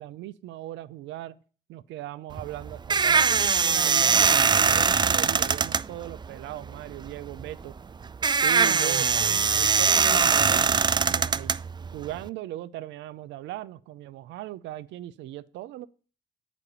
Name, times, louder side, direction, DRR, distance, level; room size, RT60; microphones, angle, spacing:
voice 1, 0.0-1.4 1.7-7.8 8.4-11.5 11.9-15.9, right 14 dB, 80° right, 0.5 m, -38 dB
sound 1, 2.3-12.3, right 5 dB, 25° right, 0.3 m, -22 dB
8.3 x 5.0 x 6.8 m
supercardioid pair, 50°, 19 cm